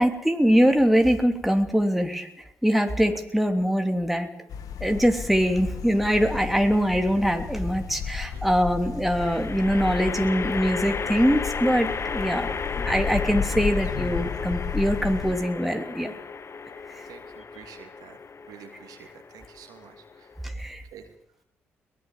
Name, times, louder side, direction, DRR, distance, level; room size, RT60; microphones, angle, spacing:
voice 1, 0.0-2.3 2.6-4.3 4.8-16.2 20.4-20.8, equal, ahead, 5 dB, 3.2 m, -23 dB
sound 1, 4.5-15.4, left 6 dB, 65° left, 2.1 m, -33 dB
sound 2, 6.0-6.6 9.2-20.5, left 5 dB, 40° left, 1.1 m, -34 dB
voice 2, 17.0-18.2 18.5-20.3 20.9-21.1, right 8 dB, 70° right, 5 dB, 2.9 m, -48 dB
22.0 x 19.5 x 7.5 m, 0.75 s
hypercardioid pair, 40°, 7 cm